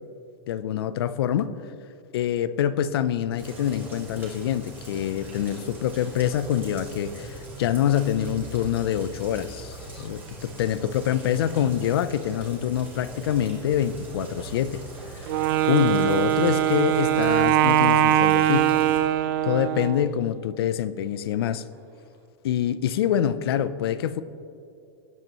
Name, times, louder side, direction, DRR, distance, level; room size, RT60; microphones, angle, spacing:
voice 1, 0.5-1.5 2.1-14.8 15.1-15.3 15.7-18.7 19.5-21.6 22.4-24.2, left 10 dB, 80° left, 15 dB, 0.6 m, -25 dB
Rain, 3.4-19.0, right 2 dB, 15° right, 2.3 m, -41 dB
Wind instrument woodwind instrument, 15.3-20.1, right 11 dB, 55° right, 0.6 m, -21 dB
19.5 x 8.1 x 3.1 m, 2.5 s
supercardioid pair, 155°, 13 cm